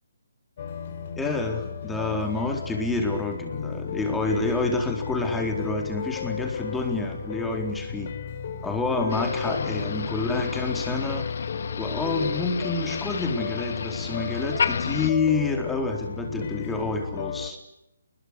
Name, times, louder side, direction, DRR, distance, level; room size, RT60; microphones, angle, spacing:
sound 1, 0.6-17.5, left 6 dB, 40° left, 5.1 m, -34 dB
voice 1, 1.1-8.1 8.6-11.3 11.8-17.6, left 3 dB, 5° left, 3 dB, 4.3 m, -28 dB
Motor vehicle (road), 9.1-15.1, left 6 dB, 60° left, 2.1 m, -32 dB
29.5 x 21.5 x 8.5 m, 0.86 s
hypercardioid pair, 165°, 0 cm